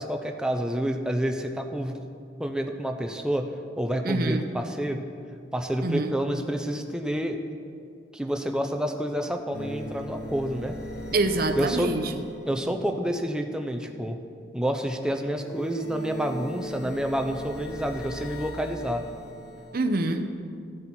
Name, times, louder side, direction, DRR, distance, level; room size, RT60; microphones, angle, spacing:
voice 1, 0.0-1.9 2.4-3.5 3.8-5.0 5.5-7.4 8.1-10.8 11.6-11.9 12.5-14.2 14.5-19.0, equal, 5° right, 4 dB, 0.6 m, -28 dB
voice 2, 4.0-4.4 5.8-6.1 11.1-12.2 19.7-20.3, right 2 dB, 55° right, 8 dB, 0.7 m, -26 dB
sound 1, 9.5-13.0 15.3-19.8, equal, 55° left, 0.8 m, -38 dB
14.5 x 8.4 x 4.3 m, 2.3 s
head